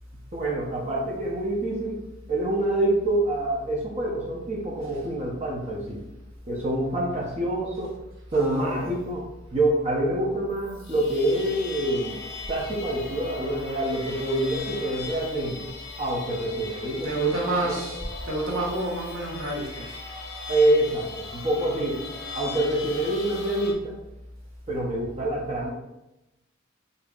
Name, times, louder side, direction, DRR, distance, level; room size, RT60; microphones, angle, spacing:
voice 1, 0.3-2.0 2.3-6.0 6.5-7.9 8.3-9.2 9.5-12.2 12.5-15.7 16.0-17.8 20.5-22.0 22.3-24.0 24.7-25.7, right 1 dB, 35° right, -3 dB, 0.7 m, -26 dB
voice 2, 8.3-9.0 17.0-19.9, right 1 dB, 80° right, -4 dB, 1.2 m, -29 dB
sound 1, 10.5-23.7, left 4 dB, 55° left, 0.7 m, -39 dB
5.2 x 2.8 x 2.4 m, 0.93 s
head